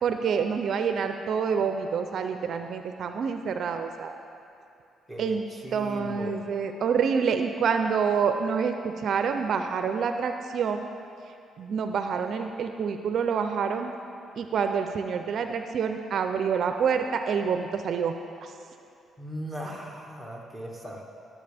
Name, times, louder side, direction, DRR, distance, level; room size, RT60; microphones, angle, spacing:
voice 1, 0.0-4.1 5.2-5.5 5.7-10.9 11.6-13.9 14.4-18.1 18.4-18.5, right 6 dB, 65° right, 6 dB, 0.5 m, -27 dB
voice 2, 5.1-6.4 19.2-21.0, right 1 dB, 5° left, -2 dB, 1.9 m, -38 dB
17.5 x 7.2 x 3.4 m, 2.6 s
cardioid pair, 90°, 0 cm